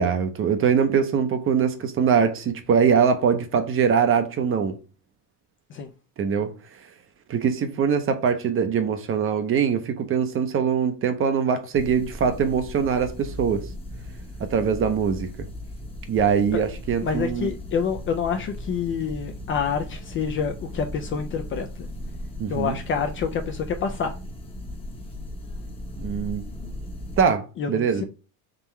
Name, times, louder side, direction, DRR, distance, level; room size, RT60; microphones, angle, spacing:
voice 1, 0.0-4.8 6.2-6.5 7.3-13.6 14.4-15.3 16.1-17.5 22.4-22.8 26.0-26.4 27.2-28.0, right 7 dB, 30° right, 0.6 m, -22 dB
sound 1, 11.7-27.2, left 1 dB, 15° left, 0.8 m, -37 dB
voice 2, 17.0-21.7 22.5-24.1 27.6-28.0, left 6 dB, 30° left, 0.4 m, -27 dB
3.8 x 2.9 x 4.2 m
cardioid pair, 140°, 43 cm